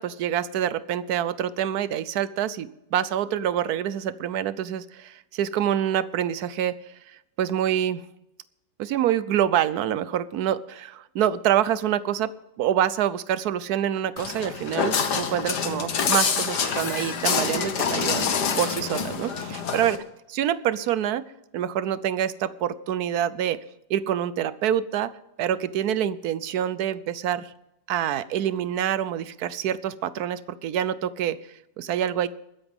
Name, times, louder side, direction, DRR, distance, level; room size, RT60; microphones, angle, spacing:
voice 1, 0.0-6.8 7.1-8.0 8.8-12.3 12.6-18.3 18.6-20.0 20.3-23.6 23.9-25.1 25.4-27.5 27.9-31.4 31.8-32.3, right 10 dB, 70° right, 16 dB, 1.2 m, -26 dB
Walk footsteps, 14.2-20.0, left 6 dB, 70° left, 1.9 m, -26 dB
22.0 x 10.0 x 3.6 m, 0.88 s
omnidirectional pair, 1.8 m